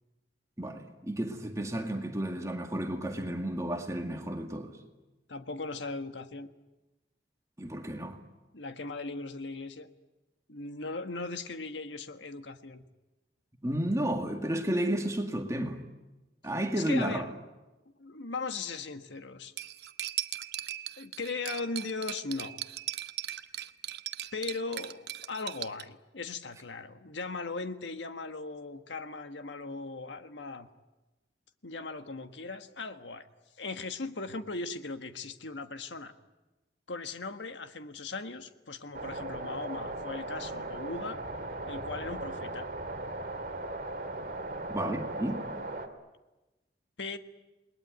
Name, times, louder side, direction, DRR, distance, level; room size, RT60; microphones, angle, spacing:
voice 1, 0.6-4.8 7.6-8.2 13.6-15.8 16.4-17.3 44.7-45.4, right 1 dB, 15° right, 2.0 m, -32 dB
voice 2, 5.3-6.5 8.5-9.9 10.5-12.8 16.8-17.3 18.0-19.5 21.0-22.6 24.3-30.7 31.6-33.2 33.6-36.1 36.9-41.2 41.7-42.7 47.0-47.2, left 3 dB, 90° left, 1.5 m, -38 dB
Cutlery silverware, 19.6-25.8, right 13 dB, 65° right, 0.8 m, -38 dB
sound 1, 38.9-45.9, right 2 dB, 50° right, 2.3 m, -38 dB
28.5 x 21.0 x 9.4 m
head